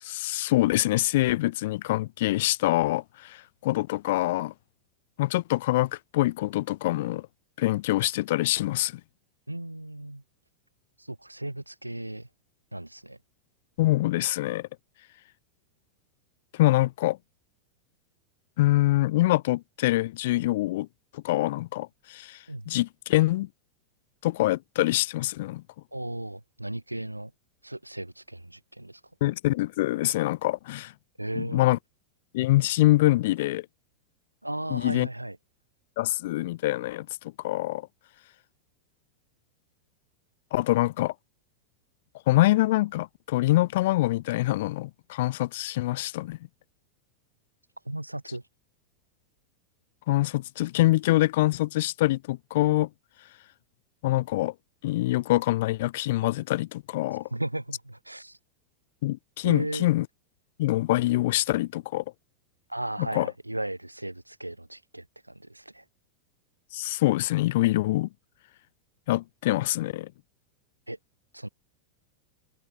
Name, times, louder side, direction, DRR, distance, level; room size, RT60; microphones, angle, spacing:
voice 1, 0.0-4.5 5.2-7.3 7.6-9.0 13.8-14.7 16.5-17.2 18.6-20.9 21.1-22.4 22.7-23.5 24.2-25.6 29.2-30.9 31.4-31.8 32.3-33.7 34.7-35.1 36.0-37.1 37.4-37.9 40.5-41.1 42.3-46.4 50.1-52.9 54.0-54.5 54.8-57.3 59.0-60.1 60.6-62.0 63.1-63.3 66.7-68.1 69.1-70.1, left 17 dB, 55° left, 2.7 m, -25 dB
voice 2, 9.5-10.2 11.0-12.3 12.7-13.2 22.5-22.7 25.9-27.3 27.6-29.0 31.2-31.7 34.4-35.4 47.9-48.5 57.1-58.4 59.4-59.9 62.7-65.8 70.9-71.0 71.3-71.5, right 1 dB, 85° right, 7.5 m, -36 dB
open air
figure-of-eight pair, 90°, 0 cm